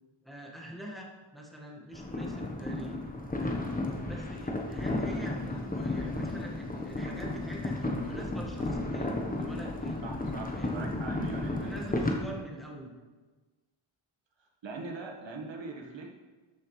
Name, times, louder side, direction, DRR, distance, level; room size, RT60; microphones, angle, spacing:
voice 1, 0.2-3.0 3.4-3.7 4.1-10.1 10.6-10.9 11.6-13.0, right 1 dB, ahead, -2 dB, 1.6 m, -44 dB
sound 1, 1.9-12.2, left 2 dB, 15° left, 1.1 m, -33 dB
voice 2, 10.0-11.8 14.6-16.1, right 3 dB, 60° right, 1 dB, 1.5 m, -41 dB
13.0 x 6.4 x 3.2 m, 1.3 s
wide cardioid pair, 95°, 50 cm